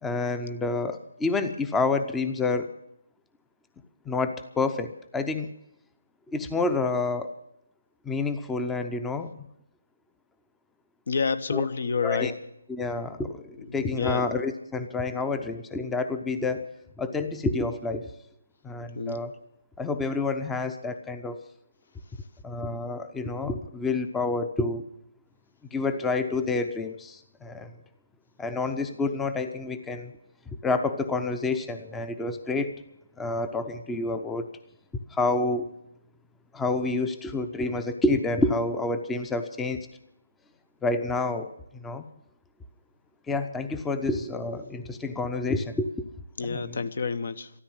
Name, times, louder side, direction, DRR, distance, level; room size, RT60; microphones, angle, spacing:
voice 1, 0.0-2.7 4.1-5.5 6.3-7.3 8.1-9.3 11.5-11.6 12.0-12.3 12.7-18.1 18.6-19.3 19.8-21.4 22.4-24.9 25.7-27.7 28.4-30.1 30.6-32.7 33.2-34.5 35.1-35.7 36.5-39.9 40.8-42.0 43.3-46.1 46.4-46.7, left 3 dB, 10° left, 9 dB, 0.7 m, -28 dB
voice 2, 11.1-12.3 13.6-14.3 18.9-19.2 46.4-47.5, left 5 dB, 60° left, 12 dB, 1.0 m, -29 dB
13.5 x 13.0 x 7.3 m, 0.77 s
figure-of-eight pair, 155°, 0 cm